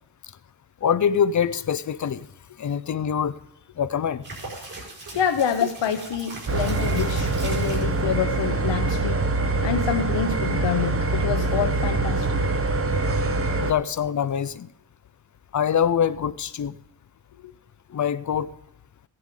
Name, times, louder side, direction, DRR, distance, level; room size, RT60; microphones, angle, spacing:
voice 1, 0.8-2.3 2.6-3.4 3.8-4.3 13.6-14.7 15.5-16.7 17.9-18.5, left 8 dB, 40° left, 16 dB, 0.4 m, -24 dB
sound 1, 4.2-7.9 14.0-14.5, right 2 dB, 45° right, 5.2 m, -39 dB
voice 2, 5.1-9.3 9.6-12.4 17.4-17.5, left 8 dB, 65° left, 6 dB, 0.8 m, -27 dB
sound 2, 6.5-13.7, right 2 dB, 30° right, 0.8 m, -24 dB
16.0 x 10.5 x 3.7 m, 0.80 s
wide cardioid pair, 165°, 47 cm